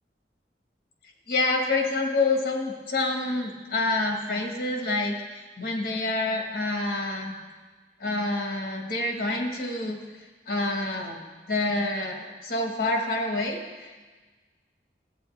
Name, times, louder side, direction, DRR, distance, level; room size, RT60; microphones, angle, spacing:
voice 1, 1.3-7.3 8.0-10.0 10.5-11.2 11.5-14.1, left 2 dB, 55° left, 1 dB, 1.5 m, -27 dB
14.0 x 8.4 x 3.4 m, 1.3 s
head